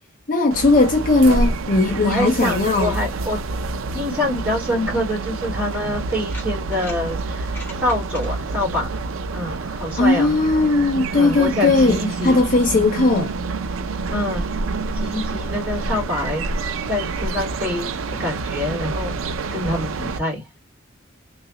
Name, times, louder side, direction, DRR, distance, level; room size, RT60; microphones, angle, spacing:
voice 1, 0.3-3.0 10.0-13.3, left 2 dB, 40° left, 0.5 m, -18 dB
sound 1, 0.5-20.2, right 3 dB, 85° right, 0.5 m, -27 dB
voice 2, 2.0-3.6 3.9-8.9 9.3-10.3 11.1-12.4 14.1-14.4 14.9-16.5 16.9-17.9 18.2-19.2 19.5-20.4, left 1 dB, 10° right, 2.1 m, -26 dB
sound 2, 5.3-5.4 6.1-7.0 7.4-8.3, left 1 dB, 10° left, 1.3 m, -40 dB
3.2 x 2.4 x 2.8 m
head